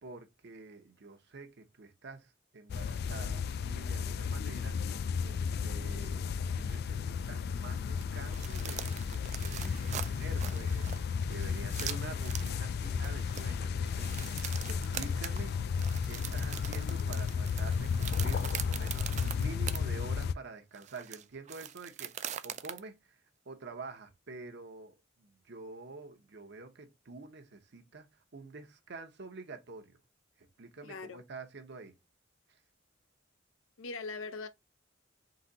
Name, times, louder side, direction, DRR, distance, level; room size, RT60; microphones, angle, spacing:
voice 1, 0.0-4.8 5.2-15.6 16.0-22.1 22.4-23.2 23.5-28.1 28.3-30.0 30.4-31.9, right 3 dB, 60° right, 0.8 m, -48 dB
sound 1, 2.7-20.3, left 6 dB, 55° left, 0.3 m, -33 dB
sound 2, 8.0-19.8 20.2-20.3 20.7-22.8, right 10 dB, 35° right, 0.3 m, -42 dB
voice 2, 30.8-31.2 33.8-34.5, left 4 dB, 90° left, 0.6 m, -41 dB
3.9 x 2.8 x 3.9 m
head